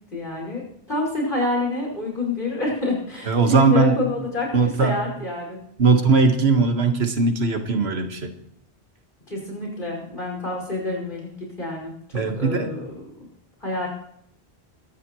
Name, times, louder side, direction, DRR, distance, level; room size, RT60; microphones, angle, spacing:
voice 1, 0.1-0.6 0.9-5.6 9.3-13.3 13.6-13.9, left 2 dB, 55° left, -2 dB, 5.8 m, -28 dB
voice 2, 3.3-4.0 4.5-5.0 5.8-8.3 12.1-12.7, right 4 dB, 85° right, 6 dB, 1.7 m, -19 dB
23.0 x 13.0 x 3.1 m, 0.71 s
omnidirectional pair, 1.0 m